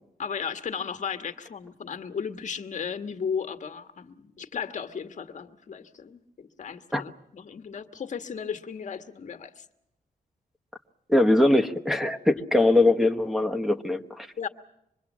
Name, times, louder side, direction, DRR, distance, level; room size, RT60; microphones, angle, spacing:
voice 1, 0.2-9.6 12.4-12.5 14.4-14.5, left 6 dB, 55° left, 1.7 m, -35 dB
voice 2, 11.1-14.3, left 2 dB, ahead, 1.2 m, -22 dB
25.5 x 22.5 x 7.4 m
cardioid pair, 100°, 15 cm